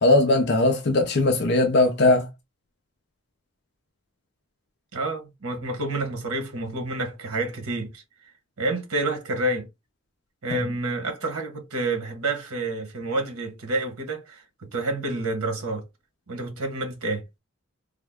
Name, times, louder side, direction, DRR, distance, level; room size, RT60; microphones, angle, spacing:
voice 1, 0.0-2.3 10.5-10.6, left 2 dB, 50° left, 0.5 m, -19 dB
voice 2, 4.9-8.0 8.6-9.7 10.4-14.4 14.7-15.8 16.3-17.2, right 2 dB, 90° right, 1.1 m, -28 dB
3.4 x 2.1 x 3.4 m
head